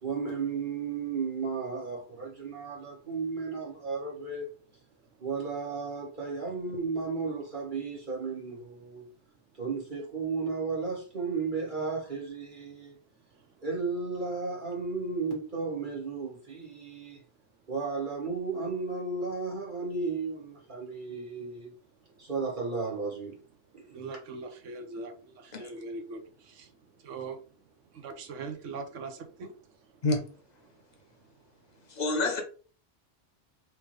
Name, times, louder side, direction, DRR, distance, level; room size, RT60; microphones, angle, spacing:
voice 1, 0.0-4.5 5.2-9.1 9.6-12.9 13.6-17.2 17.7-21.7 22.2-23.4 23.7-23.9, right 4 dB, 45° right, 1.6 m, -34 dB
voice 2, 23.9-26.7 27.0-27.4 27.9-29.5, right 3 dB, 90° right, 1.1 m, -41 dB
voice 3, 32.0-32.4, left 2 dB, 40° left, 0.8 m, -27 dB
3.4 x 3.1 x 3.1 m
omnidirectional pair, 1.2 m